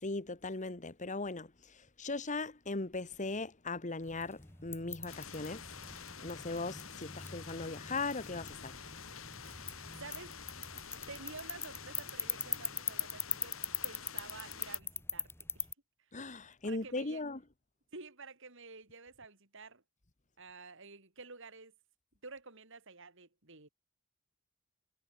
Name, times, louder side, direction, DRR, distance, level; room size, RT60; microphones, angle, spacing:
voice 1, 0.0-5.6 5.9-8.8 16.1-17.4, left 3 dB, 35° left, 1.6 m, -39 dB
sound 1, 4.0-15.7, left 4 dB, 10° left, 1.9 m, -42 dB
sound 2, 5.1-14.8, left 6 dB, 75° left, 7.1 m, -49 dB
voice 2, 9.9-10.4 10.7-15.7 16.0-16.1 16.6-17.3 17.9-19.8 20.4-21.7 22.2-23.7, right 3 dB, 65° right, 4.9 m, -51 dB
head